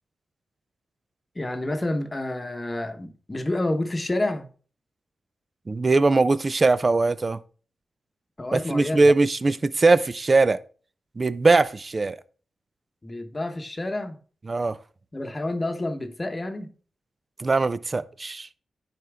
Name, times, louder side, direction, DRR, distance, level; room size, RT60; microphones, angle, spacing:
voice 1, 1.3-4.5 8.4-9.0 13.0-14.2 15.1-16.7, left 1 dB, 25° left, 1.0 m, -29 dB
voice 2, 5.7-7.4 8.5-10.6 11.2-12.2 14.5-14.8 17.4-18.5, right 3 dB, 35° right, 0.4 m, -21 dB
9.8 x 4.4 x 3.4 m
cardioid pair, 75°, 0 cm